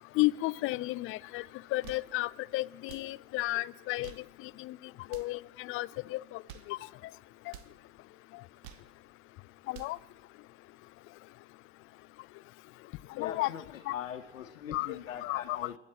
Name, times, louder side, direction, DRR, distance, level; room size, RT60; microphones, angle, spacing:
voice 1, 0.2-1.4 1.7-4.1 4.6-4.8 5.1-6.4 6.7-6.8 9.7-10.0 13.2-13.5 13.9-14.0 14.7-15.8, left 19 dB, 35° left, 20 dB, 0.4 m, -33 dB
sound 1, 1.6-2.1 2.8-3.1 3.8-4.3 5.0-5.4 6.3-6.8 7.5-7.8 8.4-8.9 9.5-10.0, right 11 dB, 55° right, 0.9 m, -51 dB
voice 2, 13.2-15.8, left 9 dB, 85° left, 5 dB, 0.9 m, -41 dB
27.5 x 9.9 x 4.3 m, 1.2 s
hypercardioid pair, 90°, 38 cm